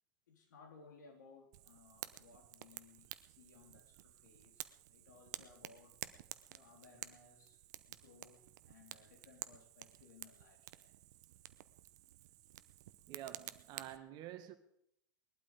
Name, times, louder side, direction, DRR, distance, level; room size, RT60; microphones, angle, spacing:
voice 1, 0.3-6.0 6.3-7.6 7.9-11.0, left 4 dB, 70° left, 3.4 m, -62 dB
Fire, 1.5-14.0, right 14 dB, 60° right, 0.8 m, -52 dB
voice 2, 13.1-14.6, right 11 dB, 45° right, 1.7 m, -49 dB
20.5 x 12.0 x 4.9 m
figure-of-eight pair, 90°, 10 cm